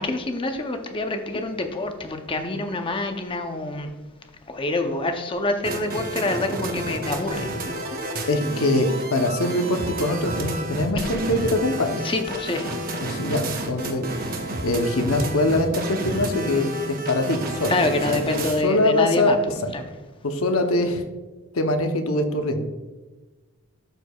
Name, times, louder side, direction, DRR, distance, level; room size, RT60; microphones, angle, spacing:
voice 1, 0.0-3.9 4.5-7.5 8.1-8.2 12.0-12.7 17.7-19.4 19.7-19.8, left 2 dB, 25° left, 6 dB, 0.6 m, -26 dB
sound 1, 5.6-18.6, right 1 dB, 40° right, 0.8 m, -30 dB
voice 2, 8.3-12.0 13.0-17.7 18.1-19.3 19.6-19.7 20.2-21.0 21.5-22.7, left 1 dB, 75° left, 6 dB, 0.8 m, -23 dB
11.5 x 4.6 x 2.3 m, 1.2 s
head